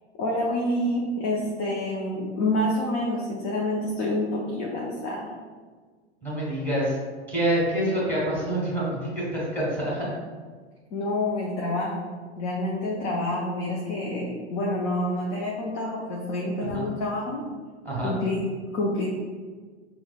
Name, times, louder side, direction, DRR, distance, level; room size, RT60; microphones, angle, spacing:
voice 1, 0.2-5.3 10.9-12.1 12.4-17.4 18.0-18.5 18.7-19.1, left 1 dB, 35° left, -3 dB, 0.6 m, -28 dB
voice 2, 6.2-7.0 7.3-10.1 16.7-16.9 17.8-18.1, right 1 dB, 5° left, -7 dB, 1.4 m, -26 dB
5.7 x 2.1 x 2.2 m, 1.5 s
figure-of-eight pair, 95°, 35 cm